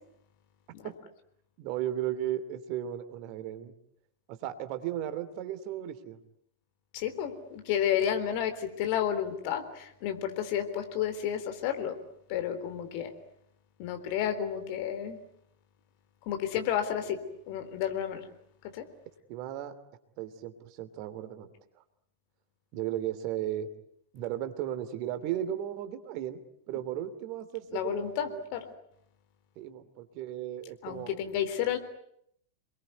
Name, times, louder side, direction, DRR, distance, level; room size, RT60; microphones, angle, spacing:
voice 1, 1.6-3.7 4.3-6.2 19.3-19.8 20.2-21.5 21.7-21.8 22.7-23.7 24.1-28.4 29.6-31.1, right 11 dB, 45° right, 10 dB, 2.8 m, -35 dB
voice 2, 6.9-12.0 12.3-13.1 13.8-15.2 16.2-18.3 18.6-18.9 27.7-28.7 30.8-31.8, left 9 dB, 45° left, 8 dB, 3.7 m, -31 dB
29.0 x 21.5 x 9.5 m, 0.73 s
figure-of-eight pair, 90°, 0 cm